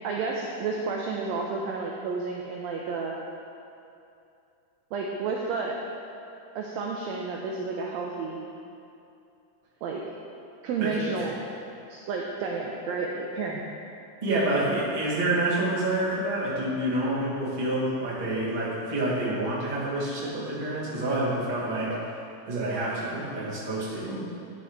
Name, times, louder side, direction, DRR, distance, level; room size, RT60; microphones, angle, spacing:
voice 1, 0.0-3.2 4.9-5.8 6.5-8.5 9.8-10.0 10.6-11.4 11.9-13.6 14.3-14.5, right 4 dB, 85° right, -1 dB, 1.5 m, -31 dB
voice 2, 10.8-11.3 14.2-21.9 22.5-24.3, right 1 dB, 30° right, -8 dB, 0.8 m, -28 dB
10.5 x 4.8 x 3.5 m, 2.6 s
omnidirectional pair, 3.6 m